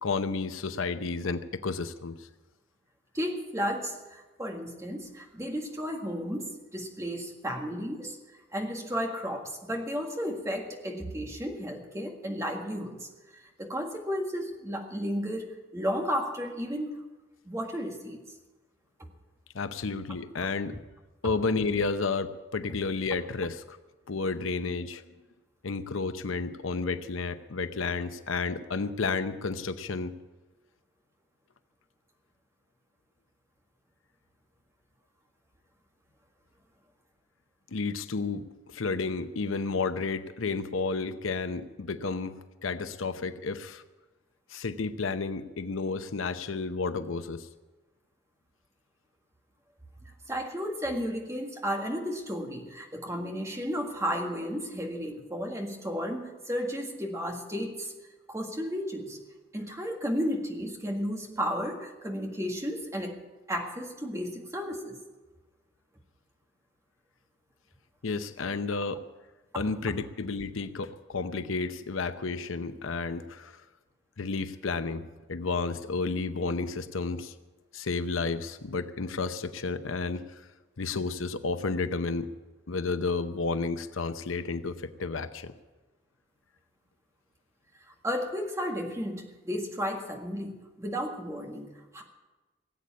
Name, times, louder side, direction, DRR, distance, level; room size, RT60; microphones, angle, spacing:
voice 1, 0.0-2.1 19.5-20.7 21.2-23.8 24.1-25.0 25.6-30.1 37.7-42.3 42.6-43.8 44.5-47.5 68.0-69.0 69.5-73.5 74.2-77.3 77.7-80.2 80.8-82.3 82.7-85.5, left 4 dB, 85° left, 11 dB, 0.8 m, -31 dB
voice 2, 3.1-8.2 8.5-17.0 17.5-18.2 50.3-57.9 58.3-59.2 59.5-63.2 63.5-65.0 88.0-92.0, equal, 15° right, 2 dB, 1.8 m, -33 dB
18.0 x 8.4 x 8.5 m, 1.2 s
head